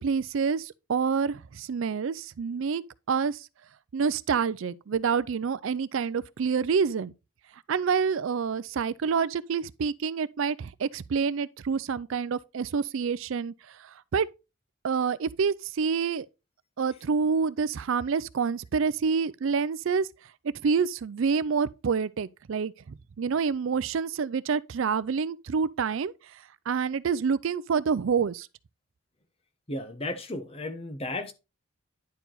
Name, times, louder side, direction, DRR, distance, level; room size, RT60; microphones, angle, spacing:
voice 1, 0.0-2.8 3.1-3.5 3.9-7.1 7.7-14.3 14.8-16.3 16.8-20.1 20.6-28.5, right 6 dB, 65° right, 0.4 m, -27 dB
voice 2, 29.7-31.3, left 2 dB, 25° left, 0.9 m, -34 dB
10.5 x 4.7 x 3.9 m
head